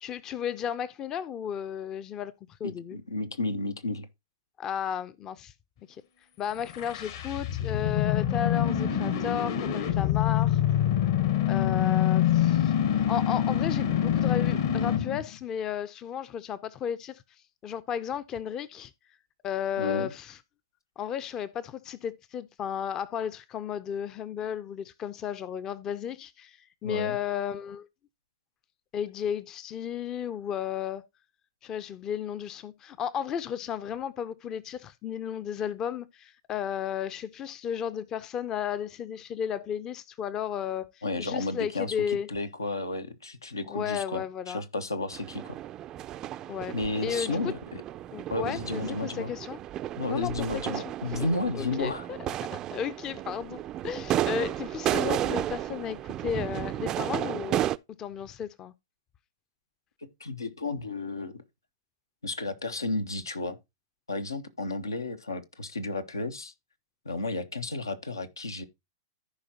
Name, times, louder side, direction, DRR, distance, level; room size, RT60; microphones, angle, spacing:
voice 1, 0.0-2.3 2.6-3.0 4.6-5.5 5.9-6.0 6.4-10.6 11.5-17.2 17.6-18.9 19.4-20.4 21.0-27.9 28.9-31.0 31.6-42.3 43.7-44.6 46.5-46.7 47.0-47.4 48.1-49.6 50.1-50.8 51.1-51.2 51.5-57.7 58.0-58.7, left 8 dB, 25° left, 0.6 m, -34 dB
voice 2, 2.6-4.1 19.8-20.1 26.8-27.2 41.0-45.6 46.7-47.8 48.3-49.3 50.0-52.1 60.0-61.4 62.2-63.6 64.1-66.5 67.0-68.6, left 2 dB, 80° left, 1.0 m, -32 dB
sound 1, 6.6-15.2, left 10 dB, 55° left, 1.6 m, -25 dB
sound 2, 45.1-57.8, right 12 dB, 30° right, 0.4 m, -33 dB
14.5 x 4.9 x 2.8 m
figure-of-eight pair, 105°, 2 cm